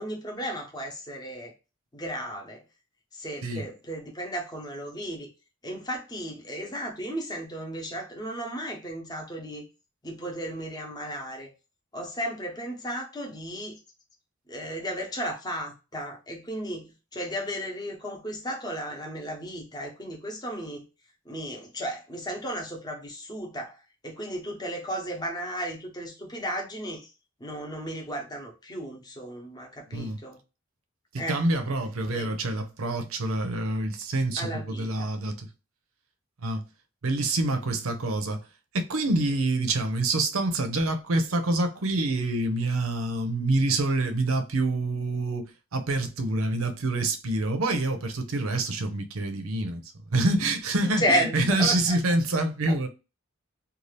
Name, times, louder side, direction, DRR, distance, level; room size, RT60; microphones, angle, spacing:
voice 1, 0.0-1.5 1.9-2.6 3.1-5.3 5.6-9.7 10.0-11.5 11.9-13.8 14.5-20.8 21.3-23.8 24.0-27.1 27.4-30.4 31.2-31.4 32.1-32.3 34.4-35.1 51.0-52.0 52.7-52.8, equal, 20° left, 0.7 m, -34 dB
voice 2, 31.3-35.5 36.4-36.6 37.0-38.4 38.7-45.5 45.7-49.8 50.1-52.9, right 2 dB, 85° right, 0.6 m, -26 dB
2.7 x 2.3 x 3.2 m
head